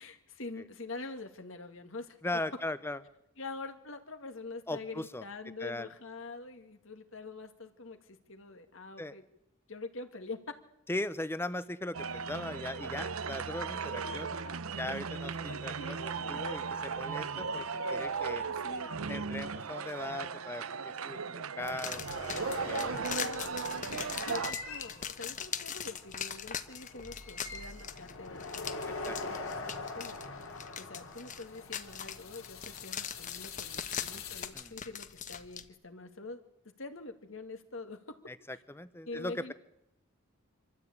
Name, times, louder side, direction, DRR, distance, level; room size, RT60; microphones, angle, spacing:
voice 1, 0.0-2.2 3.4-9.2 9.7-10.4 15.5-16.4 18.1-19.3 23.1-30.2 30.8-38.2 39.0-39.5, left 3 dB, 65° left, 6 dB, 2.2 m, -45 dB
voice 2, 2.2-3.0 4.7-5.2 5.6-5.9 9.0-9.1 10.9-14.4 14.8-18.4 19.1-23.0 29.0-29.2 34.5-34.7 38.3-39.5, left 1 dB, 10° left, 14 dB, 0.8 m, -39 dB
sound 1, 11.9-24.5, right 5 dB, 85° right, 0.8 m, -37 dB
sound 2, 21.6-34.5, left 3 dB, 85° left, 3.2 m, -43 dB
sound 3, 21.6-35.6, left 8 dB, 35° left, 1.1 m, -41 dB
25.5 x 13.5 x 8.7 m, 0.85 s
head